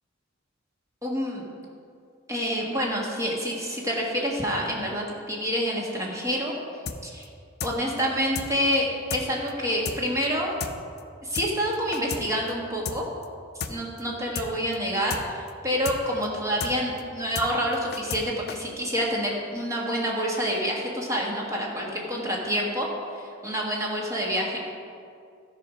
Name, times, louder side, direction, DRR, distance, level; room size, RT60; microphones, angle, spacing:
voice 1, 1.0-1.4 2.3-6.6 7.0-7.3 7.6-10.5 11.2-13.1 13.7-24.6, equal, 15° right, -2 dB, 1.5 m, -27 dB
sound 1, 6.9-7.0 7.2-7.3 7.6-7.7 8.0-8.1 8.3-8.5 8.7-8.8 9.1-9.2 9.5-9.6 9.8-10.0 10.2-10.3 10.6-10.7 11.0-11.1 11.3-11.5 11.7-12.2 12.5-12.6 12.8-13.0 13.2-13.3 13.6-13.7 14.0-14.1 14.3-14.5 14.7-14.8 15.1-15.2 15.5-15.6 15.8-16.0 16.2-16.3 16.6-16.7 17.0-17.1 17.3-17.5 17.7-18.2 18.5-18.6, left 6 dB, 50° left, 0.5 m, -32 dB
13.0 x 5.2 x 5.1 m, 2.4 s
head